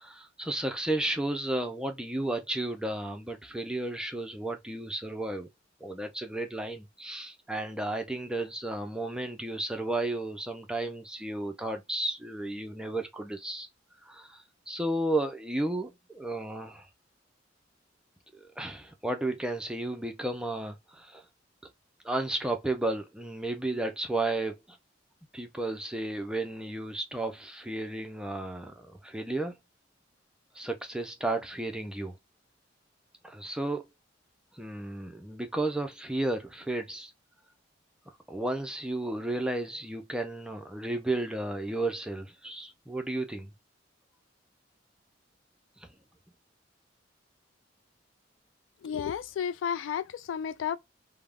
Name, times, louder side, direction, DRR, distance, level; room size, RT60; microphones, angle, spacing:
voice 1, 0.0-5.5 5.8-13.7 14.0-16.9 18.3-21.2 22.0-24.8 25.3-29.6 30.6-32.2 33.2-33.9 34.6-37.1 38.3-43.5, right 2 dB, 5° right, 0.4 m, -33 dB
voice 2, 48.8-50.8, left 8 dB, 80° left, 0.3 m, -32 dB
2.3 x 2.0 x 3.4 m
head